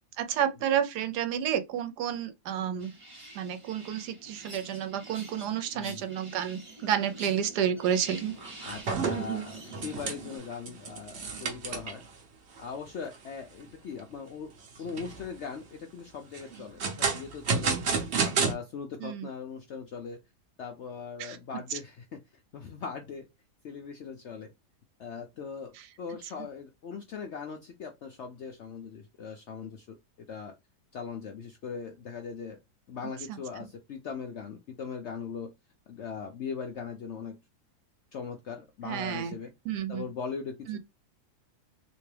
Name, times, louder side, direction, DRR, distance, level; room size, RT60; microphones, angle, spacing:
voice 1, 0.2-2.9 3.3-8.3 19.0-19.3 21.2-21.4 21.7-21.8 33.3-33.4 38.8-39.3 39.6-40.0 40.7-40.8, right 9 dB, 80° right, 1.2 m, -30 dB
sound 1, 2.8-10.4, right 2 dB, 25° right, 0.8 m, -47 dB
sound 2, 7.9-8.0 8.4-12.1 12.6-12.7 13.1-13.2 13.7-14.1 14.7-15.3 16.3-18.5, right 5 dB, 50° right, 0.9 m, -31 dB
voice 2, 8.6-12.0 12.6-14.5 14.8-17.8 18.2-20.2 20.6-22.2 22.5-23.3 23.6-24.5 25.0-30.0 30.3-30.5 30.9-32.6 32.9-35.5 35.9-37.4 38.1-39.5 39.9-40.8, left 6 dB, 70° left, 0.6 m, -40 dB
3.4 x 2.9 x 3.3 m
omnidirectional pair, 1.8 m